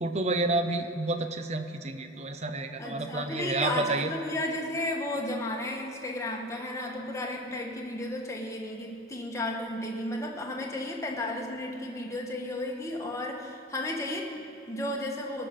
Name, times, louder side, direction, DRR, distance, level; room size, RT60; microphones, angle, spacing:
voice 1, 0.0-4.1, right 2 dB, 35° right, 8 dB, 0.7 m, -30 dB
voice 2, 2.8-15.5, left 1 dB, 15° left, 0 dB, 1.3 m, -33 dB
18.5 x 6.7 x 5.8 m, 2.7 s
head